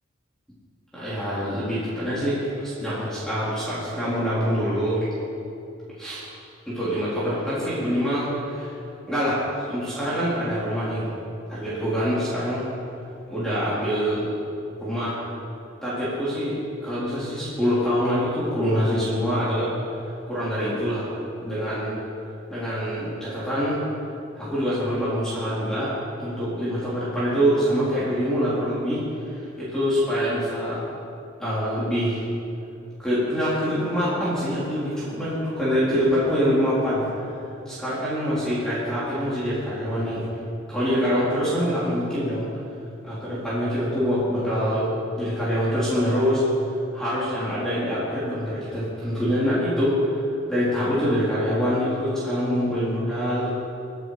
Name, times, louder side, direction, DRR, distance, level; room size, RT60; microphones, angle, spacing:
voice 1, 0.9-5.0 6.0-6.2 6.7-8.7 9.1-9.4 9.7-11.1 11.5-12.6 13.3-14.3 14.8-15.2 15.8-16.6 16.8-19.7 20.3-21.1 21.4-21.9 22.5-23.8 24.3-25.9 26.2-29.0 29.3-30.8 31.4-32.2 33.0-37.0 37.7-40.2 40.7-42.5 43.0-44.8 45.2-46.4 46.9-50.2 50.5-53.5, equal, 5° left, -11 dB, 4.0 m, -25 dB
27.0 x 9.3 x 5.1 m, 2.8 s
head